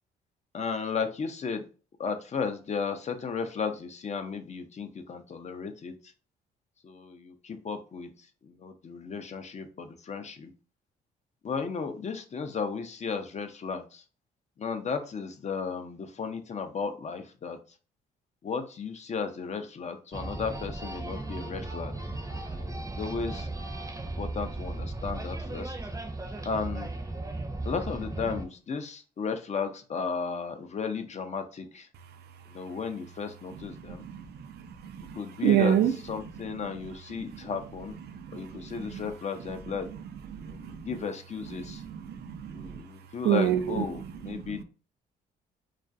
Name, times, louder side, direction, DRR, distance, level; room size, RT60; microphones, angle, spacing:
voice 1, 0.5-1.6 2.0-5.9 6.8-8.1 8.4-10.5 11.4-14.0 14.6-17.6 18.4-21.9 22.5-23.5 24.2-25.7 26.4-26.9 27.6-31.9 32.5-34.0 35.2-35.8 36.1-38.0 38.3-39.9 40.4-41.8 42.5-44.6, left 5 dB, 35° left, 0.5 m, -34 dB
sound 1, 20.1-28.5, right 2 dB, 15° right, 0.6 m, -36 dB
voice 2, 33.5-35.9 37.3-37.5 38.1-39.0 40.3-40.9 41.6-42.8 43.2-44.6, right 10 dB, 60° right, 0.4 m, -29 dB
2.3 x 2.2 x 2.5 m
hypercardioid pair, 55°, 20 cm